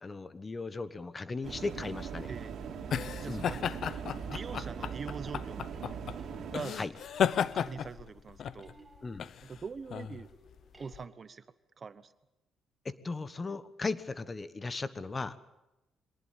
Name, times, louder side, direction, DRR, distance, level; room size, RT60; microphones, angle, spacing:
voice 1, 0.0-2.3 3.3-3.5 6.8-6.9 9.0-9.3 12.8-15.4, left 3 dB, 30° left, 14 dB, 1.3 m, -37 dB
sound 1, 1.4-6.6, right 7 dB, 65° right, 2.8 m, -40 dB
sound 2, 1.8-11.0, left 8 dB, 65° left, 0.8 m, -35 dB
voice 2, 3.2-5.6 6.5-6.8 7.4-8.7 9.4-10.3 10.8-11.4 11.8-12.1, right 5 dB, 40° right, 14 dB, 1.1 m, -43 dB
sound 3, 3.9-9.8 10.3-11.7 14.0-14.1, right 2 dB, 10° right, 6.9 m, -60 dB
23.0 x 19.0 x 8.5 m, 0.96 s
cardioid pair, 90°, 0 cm